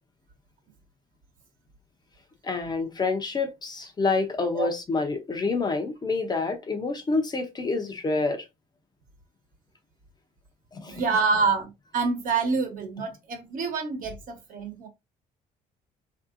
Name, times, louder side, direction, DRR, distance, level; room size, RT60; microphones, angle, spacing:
voice 1, 2.4-8.5 10.7-11.0, left 3 dB, 25° left, 0.6 m, -27 dB
voice 2, 10.8-14.9, right 4 dB, 60° right, 1.1 m, -27 dB
3.4 x 2.7 x 2.5 m
cardioid pair, 105°, 16 cm